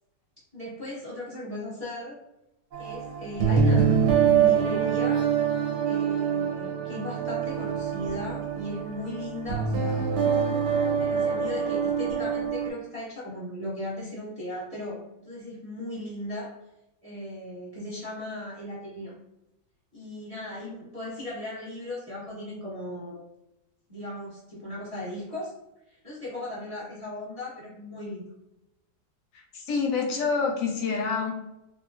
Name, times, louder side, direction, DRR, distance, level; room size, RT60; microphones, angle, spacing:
voice 1, 0.5-2.2 2.8-5.3 5.8-10.1 11.0-16.5 17.0-19.2 19.9-23.2 23.9-25.5 25.9-28.2, left 1 dB, 30° right, -8 dB, 0.7 m, -37 dB
sound 1, 2.7-12.7, right 7 dB, 80° right, 1.2 m, -25 dB
voice 2, 29.3-31.3, left 5 dB, 65° left, 1 dB, 0.9 m, -27 dB
2.9 x 2.6 x 2.4 m, 0.92 s
omnidirectional pair, 1.8 m